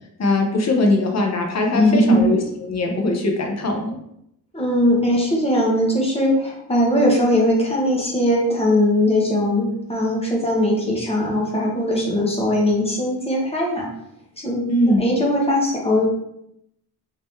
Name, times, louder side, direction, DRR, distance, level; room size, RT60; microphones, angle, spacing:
voice 1, 0.2-4.0 14.7-15.1, left 2 dB, 40° left, 2 dB, 0.7 m, -21 dB
voice 2, 1.7-2.2 4.5-13.9 14.4-16.0, left 1 dB, 15° left, -3 dB, 0.9 m, -20 dB
3.6 x 2.8 x 3.2 m, 0.77 s
wide cardioid pair, 150°, 39 cm